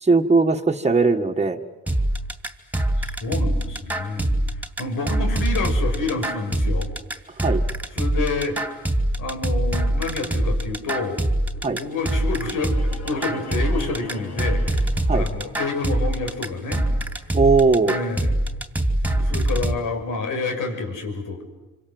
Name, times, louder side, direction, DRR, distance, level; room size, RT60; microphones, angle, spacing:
voice 1, 0.0-1.6 7.4-7.6 11.6-11.8 15.1-15.3 17.3-18.0, right 4 dB, 20° right, 3 dB, 1.7 m, -19 dB
sound 1, 1.9-19.7, right 1 dB, 5° right, 2.8 m, -23 dB
voice 2, 3.0-6.9 7.9-8.6 9.2-11.2 11.5-12.8 13.0-16.8 17.8-18.3 19.0-21.4, left 3 dB, 90° left, 4 dB, 6.1 m, -28 dB
sound 2, 11.9-19.9, left 3 dB, 55° left, 6.6 m, -43 dB
27.0 x 25.5 x 7.9 m, 1.1 s
cardioid pair, 90°, 31 cm